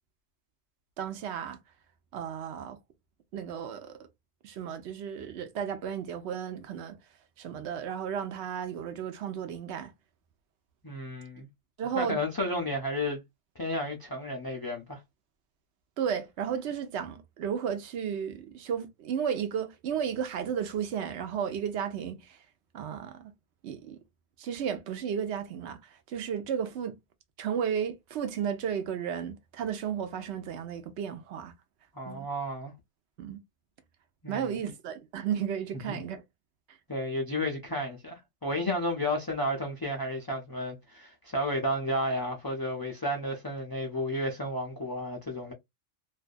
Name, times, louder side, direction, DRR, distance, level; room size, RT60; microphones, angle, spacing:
voice 1, 1.0-1.6 2.1-2.8 3.3-4.0 4.4-7.0 7.4-9.9 11.8-12.2 16.0-22.4 22.7-23.3 23.6-24.0 24.4-26.9 27.4-31.5 32.1-32.3 33.2-33.4 34.3-36.2, right 8 dB, 70° right, 0.9 m, -33 dB
voice 2, 10.8-11.5 12.0-13.2 13.6-15.0 31.9-32.7 34.2-34.7 35.9-36.0 36.9-45.5, left 1 dB, 40° left, 0.3 m, -32 dB
2.5 x 2.3 x 2.5 m
omnidirectional pair, 1.2 m